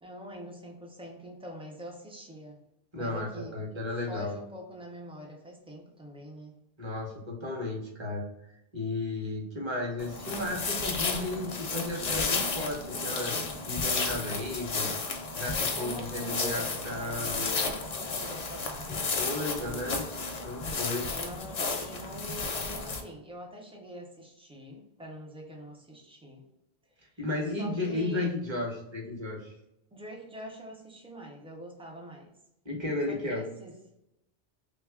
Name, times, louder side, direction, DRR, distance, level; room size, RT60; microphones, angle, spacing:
voice 1, 0.0-2.6 2.9-3.6 4.1-6.5 15.8-19.9 21.1-26.4 27.6-28.3 29.9-32.3 33.1-33.7, equal, 10° right, 0 dB, 0.4 m, -44 dB
voice 2, 2.9-4.3 6.8-8.3 8.7-13.4 13.6-14.9 15.3-17.6 19.1-20.0 20.4-21.1 27.2-29.5 32.6-33.4, left 2 dB, 30° right, -1 dB, 0.9 m, -34 dB
sound 1, 10.0-23.0, left 4 dB, 50° left, 0.5 m, -33 dB
3.1 x 2.3 x 3.5 m, 0.84 s
omnidirectional pair, 1.1 m